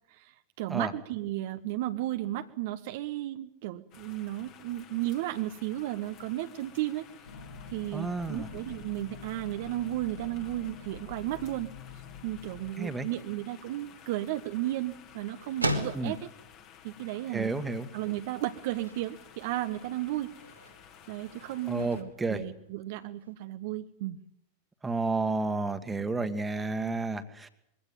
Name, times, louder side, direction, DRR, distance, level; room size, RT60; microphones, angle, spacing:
voice 1, 0.1-7.0 7.7-11.7 12.2-16.3 16.8-17.5 17.9-20.3 21.1-24.2, right 15 dB, 50° right, 8 dB, 1.1 m, -34 dB
sound 1, 3.9-22.0, left 9 dB, 40° left, 2.5 m, -54 dB
sound 2, 7.2-12.7, left 4 dB, 70° left, 4.2 m, -46 dB
voice 2, 7.9-8.5 12.8-13.1 15.9-16.2 17.3-17.9 21.7-22.4 24.8-27.5, right 3 dB, 10° right, 10 dB, 1.8 m, -31 dB
sound 3, 13.6-23.3, equal, 90° right, 2.9 m, -41 dB
22.0 x 16.5 x 9.2 m, 0.78 s
figure-of-eight pair, 90°, 0 cm